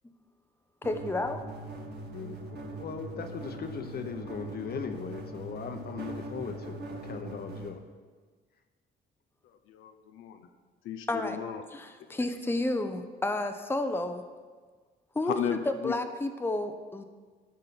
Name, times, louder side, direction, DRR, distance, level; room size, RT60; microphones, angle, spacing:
voice 1, 0.8-1.4 11.1-11.4 11.7-14.2 15.1-17.0, left 2 dB, 10° left, 7 dB, 0.8 m, -31 dB
sound 1, 0.8-7.7, right 2 dB, 55° right, 2.1 m, -41 dB
voice 2, 2.1-7.8, left 6 dB, 50° left, 7 dB, 1.1 m, -38 dB
voice 3, 9.4-10.5 10.8-11.6 12.1-12.2 15.3-15.9, left 9 dB, 90° left, 7 dB, 0.8 m, -35 dB
12.5 x 5.4 x 6.1 m, 1.5 s
cardioid pair, 90°, 20 cm